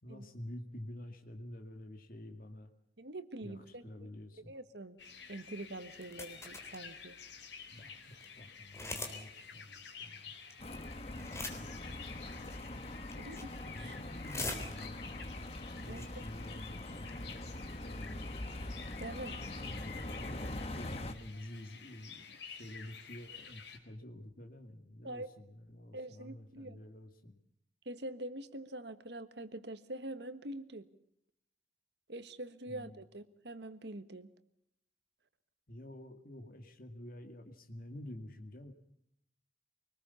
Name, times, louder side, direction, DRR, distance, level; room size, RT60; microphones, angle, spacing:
voice 1, 0.0-2.7 3.4-4.5 7.7-10.4 11.1-12.6 13.7-15.4 15.8-18.2 19.7-27.4 32.7-33.0 35.7-38.7, left 1 dB, 50° left, 5 dB, 2.3 m, -49 dB
voice 2, 3.0-3.8 4.5-5.0 5.3-7.2 13.2-14.0 15.9-16.1 19.0-19.5 25.0-25.3 25.9-26.8 27.8-30.9 32.1-34.3, right 1 dB, 70° right, 12 dB, 1.5 m, -45 dB
sound 1, 5.0-23.8, left 6 dB, 85° left, 3.9 m, -51 dB
sound 2, 5.9-6.8 7.5-7.6 7.8-7.9 8.1-8.3 8.7-9.2 9.4-9.5 10.5-10.9 11.1-11.8 12.5-12.8 13.1-13.6 13.9-15.1 15.6-15.7 15.8-16.1 16.4-16.7, left 2 dB, 15° left, 3.5 m, -42 dB
sound 3, 10.6-21.1, left 1 dB, 35° left, 1.2 m, -43 dB
25.0 x 20.0 x 7.0 m, 0.72 s
head